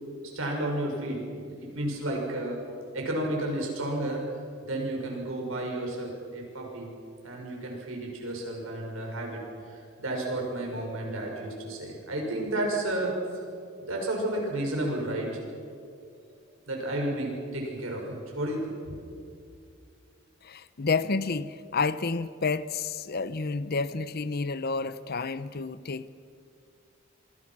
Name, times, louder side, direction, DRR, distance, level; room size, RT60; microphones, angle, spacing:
voice 1, 0.2-2.6 2.9-4.3 4.6-6.9 7.2-9.4 9.7-13.2 13.8-15.3 16.7-19.0, right 1 dB, 80° right, 6.6 m, -32 dB
voice 2, 20.4-26.1, left 4 dB, 50° left, 0.7 m, -30 dB
27.0 x 24.0 x 6.1 m
head